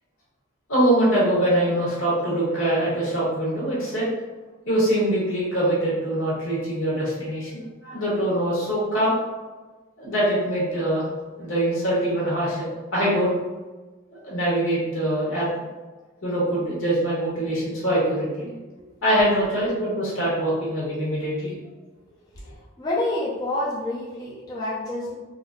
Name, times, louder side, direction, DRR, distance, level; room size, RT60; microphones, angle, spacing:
voice 1, 0.7-4.1 4.6-9.1 10.0-11.0 11.4-13.3 14.2-15.5 16.2-18.5 19.0-21.5, right 1 dB, 75° left, -7 dB, 1.5 m, -23 dB
voice 2, 22.8-25.2, left 1 dB, 20° left, -7 dB, 0.5 m, -28 dB
3.9 x 2.5 x 2.3 m, 1.3 s
head